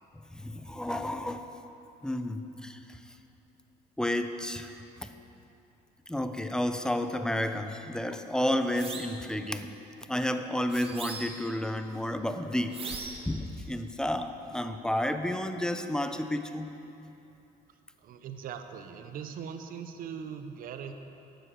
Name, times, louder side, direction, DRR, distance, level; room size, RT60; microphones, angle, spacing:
voice 1, 0.3-1.5 2.0-3.0 4.0-4.7 5.0-5.1 6.1-9.7 10.1-13.0 13.3-16.7, left 1 dB, 5° left, 8 dB, 0.5 m, -31 dB
sound 1, 8.7-9.2 10.7-11.5 12.7-13.3, right 4 dB, 35° right, 1.0 m, -40 dB
voice 2, 17.7-20.9, right 7 dB, 60° right, 8 dB, 0.6 m, -41 dB
9.1 x 6.4 x 6.5 m, 2.8 s
cardioid pair, 110°, 17 cm